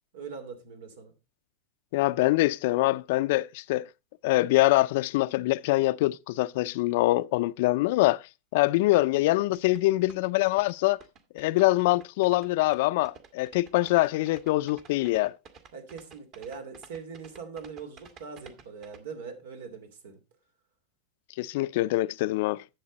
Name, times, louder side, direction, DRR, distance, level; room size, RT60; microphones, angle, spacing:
voice 1, 0.1-1.1 15.7-20.2, right 5 dB, 85° right, 2.9 m, -42 dB
voice 2, 1.9-3.9 4.2-8.2 8.5-11.0 11.3-15.3 21.4-22.6, left 18 dB, 65° left, 0.4 m, -24 dB
sound 1, 9.5-19.0, right 6 dB, 40° right, 1.7 m, -52 dB
11.0 x 7.5 x 4.0 m
supercardioid pair, 140°, 0 cm